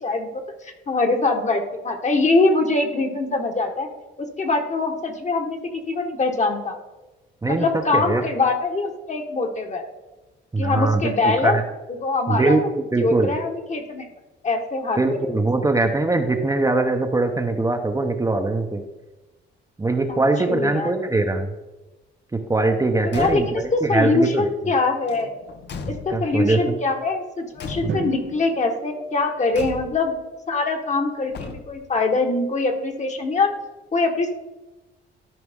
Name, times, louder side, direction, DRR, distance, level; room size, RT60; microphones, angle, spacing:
voice 1, 0.0-3.9 4.2-6.8 7.5-9.8 10.6-11.6 11.9-12.6 13.0-14.1 14.4-15.4 20.1-20.2 20.5-20.9 23.1-25.3 25.9-30.2 30.5-33.5 33.9-34.3, left 3 dB, 35° left, 4 dB, 1.3 m, -23 dB
voice 2, 7.9-8.2 10.5-11.1 11.4-11.6 12.3-13.3 15.0-18.8 19.8-21.5 22.3-24.5 25.8-26.8 27.8-28.0, right 2 dB, 15° right, 4 dB, 0.8 m, -22 dB
Car / Truck / Slam, 23.0-23.8 25.0-26.5 27.6-28.3 29.5-30.2 31.3-32.0, left 5 dB, 60° left, 0.8 m, -37 dB
Drum, 27.9-30.0, right 7 dB, 55° right, 0.7 m, -36 dB
13.0 x 5.0 x 3.6 m, 1.1 s
cardioid pair, 90°, 20 cm